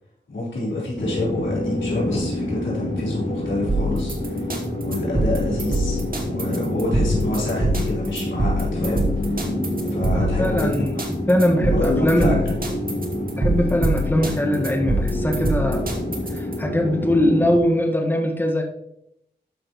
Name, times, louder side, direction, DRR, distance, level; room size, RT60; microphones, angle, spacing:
voice 1, 0.3-4.5 4.8-9.4 9.8-10.7 11.6-12.4, left 2 dB, 85° left, -6 dB, 4.0 m, -27 dB
sound 1, 1.0-17.6, left 1 dB, 45° left, 3.2 m, -27 dB
sound 2, 3.7-16.6, right 1 dB, 50° right, 2.0 m, -25 dB
voice 2, 10.1-10.9 11.3-12.4 13.3-15.8 16.3-18.6, equal, 10° left, 1 dB, 1.6 m, -21 dB
12.5 x 6.2 x 3.1 m, 0.76 s
cardioid pair, 45°, 19 cm